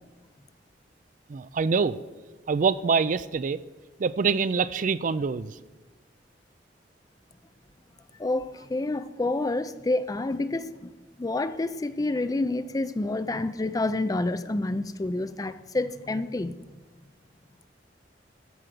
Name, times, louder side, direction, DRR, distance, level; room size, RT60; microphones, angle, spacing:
voice 1, 1.3-2.0 2.5-3.6 4.0-5.5, right 5 dB, 45° right, 15 dB, 0.4 m, -25 dB
voice 2, 8.2-10.9 11.2-16.6, left 2 dB, 20° left, 13 dB, 0.4 m, -28 dB
14.0 x 5.1 x 6.0 m, 1.2 s
head